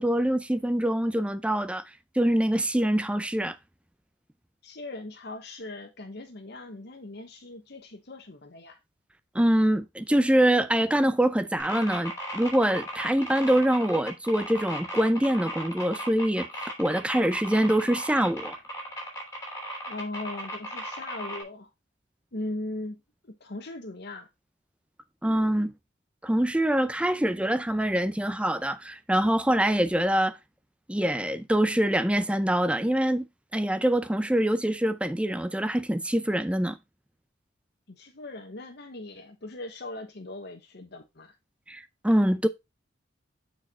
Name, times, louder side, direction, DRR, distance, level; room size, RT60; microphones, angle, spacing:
voice 1, 0.0-1.8 2.2-3.6 9.3-16.5 16.8-18.6 25.2-25.7 26.2-30.4 30.9-33.3 33.5-36.8 41.7-42.5, right 1 dB, 5° right, 0.5 m, -24 dB
voice 2, 4.6-8.8 19.9-21.7 22.3-23.0 23.2-24.3 37.9-41.3, left 2 dB, 60° left, 1.2 m, -39 dB
sound 1, 11.6-21.4, equal, 15° left, 2.9 m, -36 dB
6.8 x 4.7 x 4.3 m
head